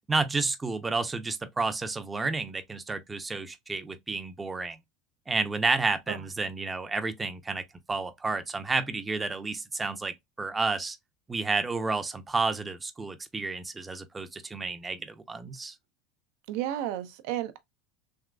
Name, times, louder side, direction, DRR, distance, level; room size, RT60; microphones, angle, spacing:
voice 1, 0.1-4.8 5.3-11.0 11.3-15.7, right 3 dB, 20° right, 0.6 m, -31 dB
voice 2, 16.5-17.6, right 12 dB, 65° right, 0.6 m, -32 dB
3.6 x 2.9 x 2.3 m
hypercardioid pair, 85°, 0 cm